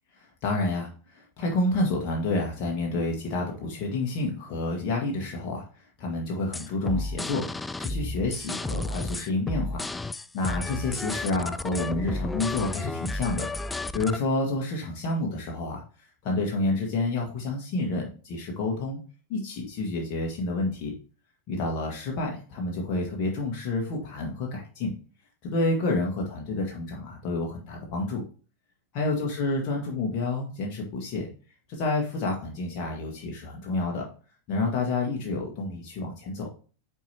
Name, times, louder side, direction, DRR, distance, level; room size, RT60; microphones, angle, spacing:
voice 1, 0.4-9.8 10.3-15.8 16.2-19.0 19.3-20.9 21.5-24.9 25.4-28.2 28.9-31.3 31.7-34.0 34.5-36.5, left 2 dB, 40° left, 0 dB, 1.7 m, -29 dB
sound 1, 6.5-14.2, left 2 dB, 10° left, 0.3 m, -32 dB
9.1 x 4.8 x 2.9 m, 0.38 s
figure-of-eight pair, 90°, 0 cm